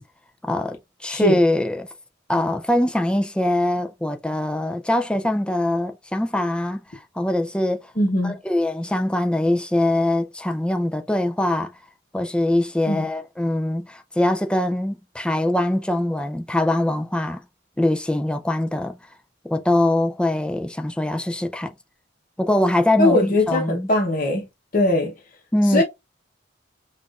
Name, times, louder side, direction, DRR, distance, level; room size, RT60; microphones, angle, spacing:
voice 1, 0.4-1.9 2.3-6.8 7.2-7.9 8.2-11.7 12.1-17.4 17.8-19.0 19.4-21.7 22.4-23.9 25.5-25.8, left 1 dB, 5° left, 0.4 m, -22 dB
voice 2, 8.0-8.4 12.9-13.1 23.0-24.5 24.7-25.1 25.7-25.8, left 1 dB, 45° left, 0.9 m, -20 dB
5.9 x 2.4 x 2.4 m
head